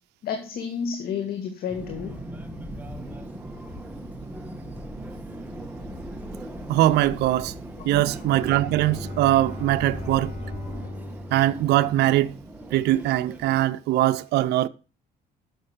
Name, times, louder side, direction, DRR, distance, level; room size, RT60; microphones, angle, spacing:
voice 1, 0.2-2.2 7.8-8.0, left 7 dB, 65° left, 1.9 m, -31 dB
Subway metro underground, 1.7-13.7, right 1 dB, 10° right, 1.6 m, -39 dB
sound 1, 1.9-10.9, left 2 dB, 15° left, 2.1 m, -44 dB
voice 2, 6.7-7.5 7.9-10.3 11.3-12.4 12.7-14.7, right 14 dB, 80° right, 0.7 m, -21 dB
Bowed string instrument, 8.1-12.6, left 1 dB, 45° left, 6.4 m, -38 dB
10.5 x 7.2 x 5.1 m
cardioid pair, 110°, 17 cm